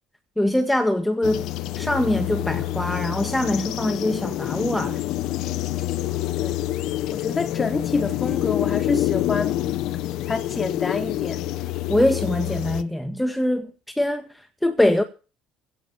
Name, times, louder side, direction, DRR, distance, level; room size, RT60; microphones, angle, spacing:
voice 1, 0.4-1.5 1.8-5.0 11.9-15.0, left 1 dB, 5° left, 1.8 m, -23 dB
sound 1, 1.2-12.8, left 14 dB, 70° left, 0.9 m, -27 dB
voice 2, 7.1-9.6 10.3-11.5, left 4 dB, 30° left, 3.6 m, -27 dB
16.5 x 7.1 x 7.0 m
hypercardioid pair, 65°, 0 cm